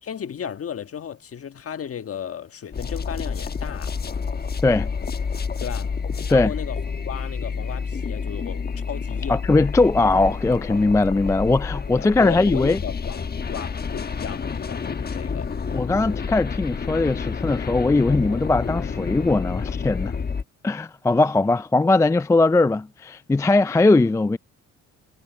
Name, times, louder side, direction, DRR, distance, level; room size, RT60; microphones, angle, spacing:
voice 1, 0.0-3.9 5.6-5.9 6.3-9.4 11.9-15.5, left 8 dB, 50° left, 1.5 m, -35 dB
sound 1, 2.7-20.4, left 5 dB, 30° left, 1.1 m, -29 dB
voice 2, 9.3-12.8 15.7-20.1 20.6-24.4, left 3 dB, 10° left, 0.4 m, -20 dB
cardioid pair, 90°, 30 cm